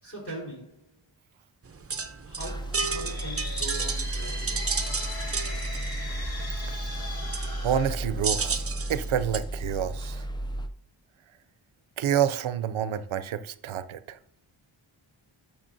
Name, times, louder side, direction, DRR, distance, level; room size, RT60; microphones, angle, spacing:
voice 1, 0.0-0.9 2.2-4.7, right 1 dB, 30° left, 4.1 m, -41 dB
sound 1, 1.6-9.4, right 5 dB, 30° right, 0.7 m, -33 dB
sound 2, 2.4-10.7, right 1 dB, 10° left, 0.4 m, -34 dB
sound 3, 2.8-8.7, left 2 dB, 50° left, 2.5 m, -39 dB
voice 2, 7.6-8.6 8.9-10.3 12.0-14.2, right 9 dB, 90° right, 0.6 m, -28 dB
12.0 x 7.2 x 2.6 m
wide cardioid pair, 95°, 47 cm